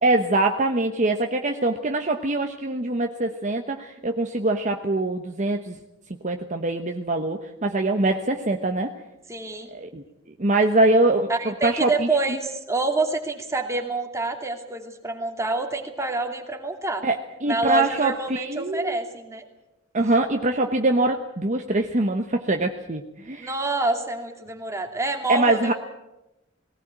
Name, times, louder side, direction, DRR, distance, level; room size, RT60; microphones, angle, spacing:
voice 1, 0.0-5.8 6.2-8.9 9.7-10.0 10.4-12.1 17.0-19.0 19.9-23.5 25.3-25.7, right 2 dB, 40° right, 4 dB, 1.1 m, -23 dB
voice 2, 9.3-9.7 11.3-17.1 17.5-19.4 23.4-25.7, right 2 dB, 15° right, 3 dB, 2.6 m, -27 dB
19.0 x 18.0 x 8.9 m, 0.95 s
head